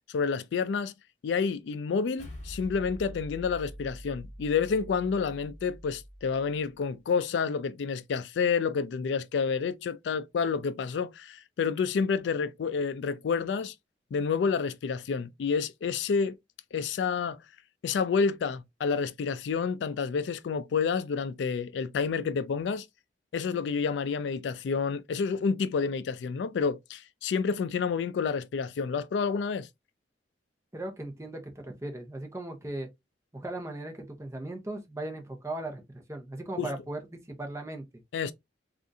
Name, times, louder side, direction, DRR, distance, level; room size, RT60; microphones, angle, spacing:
voice 1, 0.1-0.9 1.2-13.7 14.1-16.4 16.7-17.4 17.8-22.9 23.3-29.7 36.6-36.7 38.1-38.3, left 5 dB, 75° left, 0.3 m, -29 dB
sound 1, 2.2-6.7, equal, 40° left, 1.4 m, -45 dB
voice 2, 30.7-32.9 33.3-37.8, right 1 dB, 15° right, 0.8 m, -38 dB
3.5 x 2.5 x 2.6 m
head